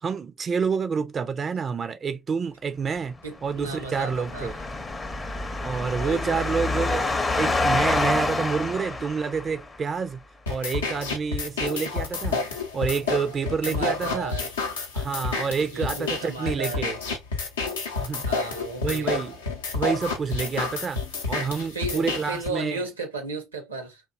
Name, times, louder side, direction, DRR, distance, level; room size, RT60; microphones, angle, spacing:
voice 1, 0.0-3.1 3.4-4.5 5.6-7.1 7.4-10.2 10.5-12.4 12.7-14.3 14.9-17.0 18.0-18.3 18.8-19.3 19.7-21.0 21.3-22.8, right 5 dB, 35° right, 0.3 m, -28 dB
voice 2, 3.2-4.5 6.0-6.5 13.6-14.5 15.7-16.9 18.3-19.2 21.7-24.0, right 3 dB, 85° right, 0.6 m, -34 dB
sound 1, 3.4-9.8, left 2 dB, 20° left, 0.6 m, -27 dB
sound 2, 10.5-22.5, left 4 dB, 80° left, 0.6 m, -30 dB
2.5 x 2.1 x 2.5 m
figure-of-eight pair, 60°, 0 cm